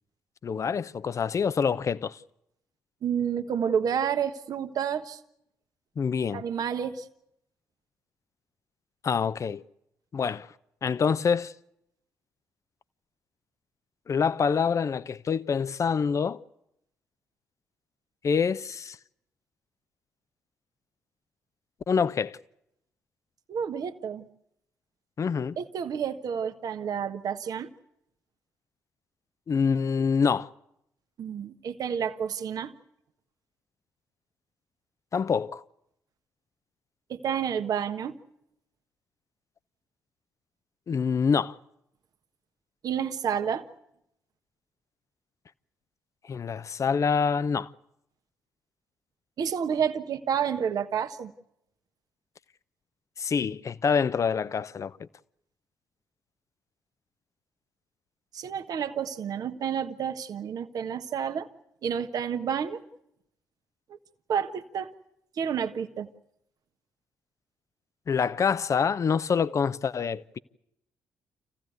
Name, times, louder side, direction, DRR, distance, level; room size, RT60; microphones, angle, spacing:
voice 1, 0.4-2.2 6.0-6.4 9.0-9.6 10.1-10.5 10.8-11.5 14.1-16.4 18.2-19.0 21.9-22.4 25.2-25.6 29.5-30.5 35.1-35.6 40.9-41.6 46.3-47.7 53.2-55.1 68.1-70.4, left 6 dB, 45° left, 0.8 m, -26 dB
voice 2, 3.0-5.2 6.3-7.0 23.5-24.3 25.6-27.7 31.2-32.7 37.1-38.2 42.8-43.6 49.4-51.3 58.3-61.5 61.8-62.8 64.3-64.9 65.4-66.1, right 8 dB, 60° right, 1.3 m, -30 dB
27.5 x 15.5 x 9.4 m
hypercardioid pair, 45°, 7 cm